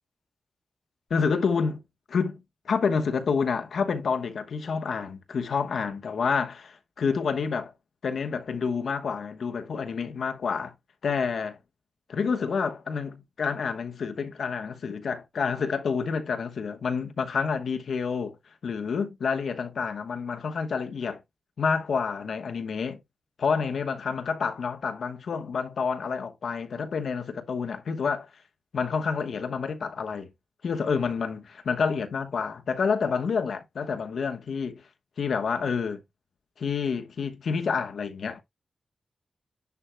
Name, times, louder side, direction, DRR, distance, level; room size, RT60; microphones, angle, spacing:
voice 1, 1.1-1.8 2.1-7.7 8.0-10.7 11.0-11.6 12.1-18.4 18.6-21.2 21.6-23.0 23.4-28.3 28.7-30.3 30.6-34.8 35.2-36.0 36.6-38.4, left 5 dB, 75° left, 1.1 m, -28 dB
10.5 x 4.5 x 2.2 m
wide cardioid pair, 160°, 0 cm